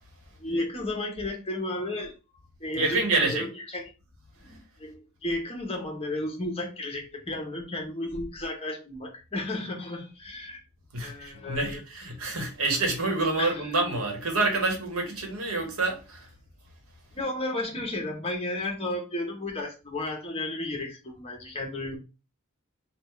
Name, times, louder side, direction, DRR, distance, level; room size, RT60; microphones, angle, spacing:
voice 1, 0.4-2.1 2.6-3.8 4.4-10.6 11.0-11.8 13.4-13.7 17.1-22.0, left 1 dB, 30° left, 1.0 m, -33 dB
voice 2, 2.8-3.4 10.9-16.3, right 3 dB, 80° right, 1.3 m, -27 dB
3.6 x 2.4 x 4.4 m
head